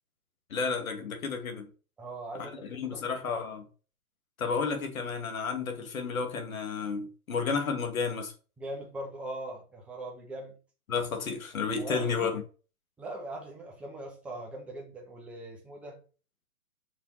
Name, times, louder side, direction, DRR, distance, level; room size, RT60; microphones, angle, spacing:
voice 1, 0.5-1.7 2.4-3.6 4.4-8.3 10.9-12.4, left 5 dB, 70° left, 2.5 m, -32 dB
voice 2, 2.0-3.4 8.6-10.6 11.8-12.3 13.0-16.0, right 1 dB, 5° right, 0.7 m, -41 dB
6.4 x 5.9 x 4.3 m
hypercardioid pair, 150°, 43 cm